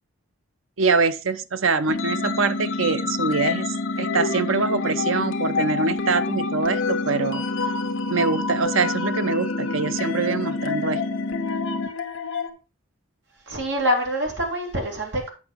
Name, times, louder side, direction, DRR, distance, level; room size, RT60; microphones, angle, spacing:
voice 1, 0.8-7.4 8.1-11.0, right 4 dB, 75° right, 0.7 m, -24 dB
sound 1, 1.8-12.5, left 5 dB, 70° left, 1.1 m, -30 dB
sound 2, 1.9-11.9, left 2 dB, 45° left, 1.1 m, -29 dB
voice 2, 13.5-15.3, equal, 55° right, 2.6 m, -25 dB
8.4 x 6.0 x 4.5 m
head